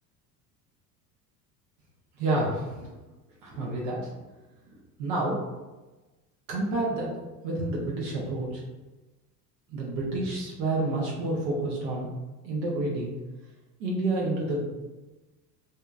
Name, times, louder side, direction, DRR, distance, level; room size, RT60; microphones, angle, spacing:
voice 1, 2.2-2.8 3.4-4.0 5.0-5.4 6.5-7.1 7.4-8.6 9.7-12.1 12.4-13.1 13.8-14.7, right 2 dB, 70° right, -3 dB, 0.8 m, -29 dB
2.7 x 2.2 x 2.3 m, 1.1 s
hypercardioid pair, 75°, 49 cm